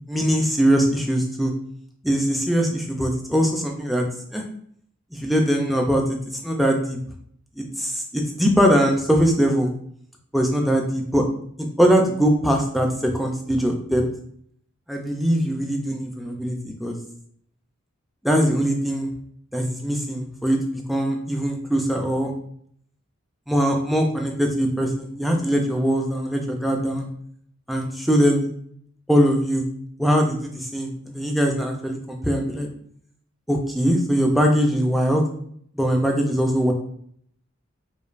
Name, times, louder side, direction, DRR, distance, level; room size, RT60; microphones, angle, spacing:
voice 1, 0.1-1.5 2.0-4.0 4.3-4.4 5.1-6.0 6.4-7.0 7.6-9.7 10.3-11.2 11.6-14.1 14.9-17.0 18.2-19.1 19.5-22.3 23.5-27.1 27.7-28.5 29.1-29.7 30.0-32.7 33.5-35.2 35.7-36.7, equal, ahead, 1 dB, 0.4 m, -21 dB
5.1 x 2.3 x 2.4 m, 0.65 s
head